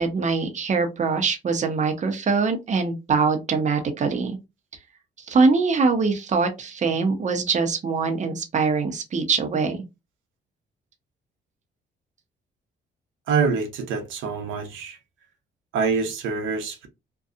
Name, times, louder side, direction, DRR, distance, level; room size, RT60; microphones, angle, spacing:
voice 1, 0.0-4.4 5.3-9.8, right 4 dB, 35° right, 0.7 m, -23 dB
voice 2, 13.3-15.0 15.7-16.9, right 5 dB, 80° right, 0.7 m, -25 dB
2.6 x 2.2 x 2.4 m
cardioid pair, 90°, 20 cm